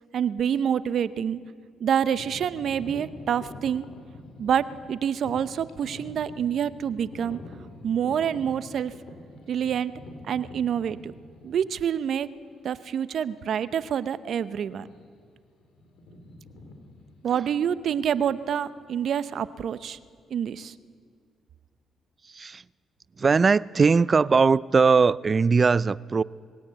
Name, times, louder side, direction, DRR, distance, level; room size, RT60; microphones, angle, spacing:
voice 1, 0.1-1.4 1.8-3.9 4.4-7.4 7.8-8.9 9.5-9.9 10.2-11.1 11.4-12.3 12.6-14.9 17.2-20.0 20.3-20.7, right 8 dB, 65° right, 0.7 m, -27 dB
sound 1, 2.1-11.9 12.5-12.7 13.3-13.5 13.8-14.0 14.7-15.3 15.5-18.9, left 1 dB, 75° left, 4.2 m, -46 dB
voice 2, 22.3-22.6 23.2-26.2, right 5 dB, 40° right, 0.4 m, -20 dB
21.0 x 17.0 x 8.0 m
supercardioid pair, 55°, 0 cm